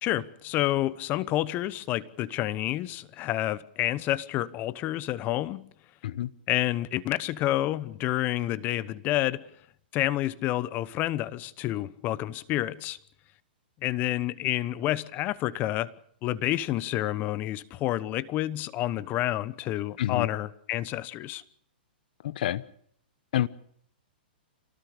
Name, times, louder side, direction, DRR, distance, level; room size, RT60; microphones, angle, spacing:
voice 1, 0.0-5.7 6.5-9.4 9.9-13.0 13.8-15.9 16.2-21.4, left 15 dB, 35° left, 1.0 m, -29 dB
voice 2, 20.0-20.3 22.2-22.6 23.3-23.5, left 12 dB, 60° left, 1.0 m, -28 dB
27.0 x 18.5 x 6.8 m
hypercardioid pair, 120°, 5 cm